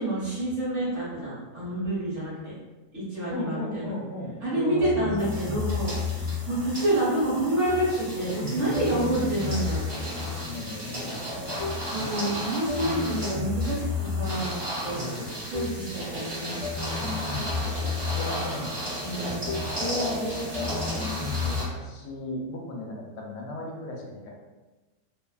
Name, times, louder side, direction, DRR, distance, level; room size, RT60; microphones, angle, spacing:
voice 1, 0.0-2.6 2.9-3.9 4.4-6.2 6.5-9.9 11.9-15.0 15.5-16.6 16.9-18.1 19.0-19.6, right 1 dB, 50° right, -9 dB, 1.1 m, -28 dB
voice 2, 3.3-5.3 8.3-8.9 10.3-12.1 14.8-15.4 17.0-17.4 18.0-18.8 19.6-24.3, left 2 dB, 80° left, -1 dB, 1.1 m, -36 dB
sound 1, 4.8-6.6 7.7-8.1 8.7-10.6 11.6-12.0 12.7-14.6 15.5-16.0 16.6-18.5 19.5-19.9 20.5-21.7, left 5 dB, 60° left, 0.9 m, -32 dB
sound 2, 5.2-21.6, right 1 dB, 30° right, 0.9 m, -35 dB
2.8 x 2.3 x 2.3 m, 1.2 s
omnidirectional pair, 1.8 m